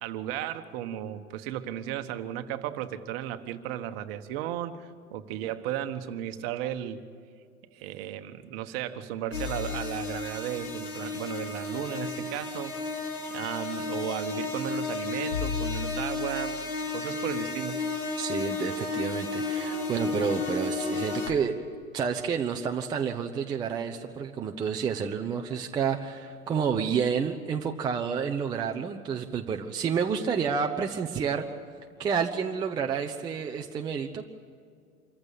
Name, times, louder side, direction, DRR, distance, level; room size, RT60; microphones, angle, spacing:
voice 1, 0.0-7.0 7.7-13.0 13.3-16.6 16.9-17.8, right 11 dB, 40° right, 9 dB, 1.4 m, -35 dB
sound 1, 9.3-21.3, left 3 dB, 70° left, 3.3 m, -32 dB
voice 2, 18.2-21.5 21.9-31.5 32.0-34.2, right 6 dB, 10° right, 4 dB, 0.5 m, -29 dB
26.5 x 15.0 x 8.6 m, 2.2 s
figure-of-eight pair, 105°, 45 cm